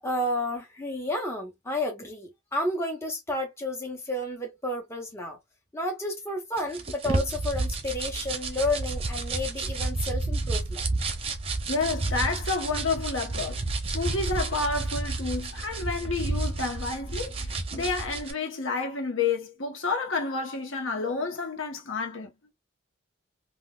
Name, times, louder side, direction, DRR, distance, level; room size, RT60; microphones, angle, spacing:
voice 1, 0.0-5.4 5.7-10.9, left 1 dB, 15° left, 0.9 m, -31 dB
sound 1, 6.6-18.3, right 3 dB, 30° right, 0.6 m, -31 dB
voice 2, 11.7-13.6 13.9-17.4 17.7-22.3, left 4 dB, 80° left, 1.0 m, -30 dB
3.7 x 2.5 x 2.2 m
head